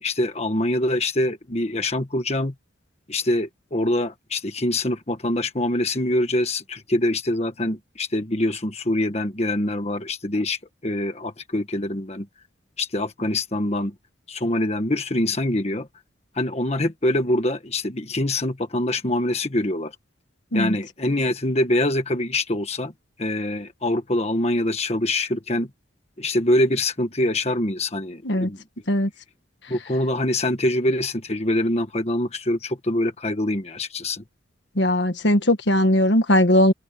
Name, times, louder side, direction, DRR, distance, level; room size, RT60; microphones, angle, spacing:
voice 1, 0.0-2.5 3.1-12.3 12.8-13.9 14.3-15.9 16.3-19.9 20.5-22.9 23.2-25.7 26.2-28.6 29.7-34.2, left 1 dB, 35° left, 1.4 m, -24 dB
voice 2, 34.7-36.7, left 1 dB, 60° left, 1.6 m, -19 dB
open air
head